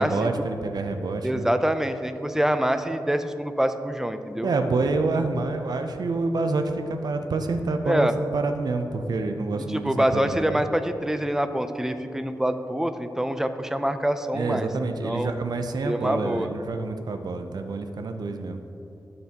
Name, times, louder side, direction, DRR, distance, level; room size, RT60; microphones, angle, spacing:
voice 1, 0.0-1.5 4.4-10.6 14.3-18.6, right 3 dB, 65° right, 6 dB, 0.6 m, -27 dB
voice 2, 1.2-4.5 7.9-8.1 9.7-14.7 15.0-15.3 15.8-16.5, right 1 dB, 5° right, 9 dB, 0.4 m, -25 dB
11.5 x 6.8 x 2.9 m, 2.7 s
wide cardioid pair, 110°, 8 cm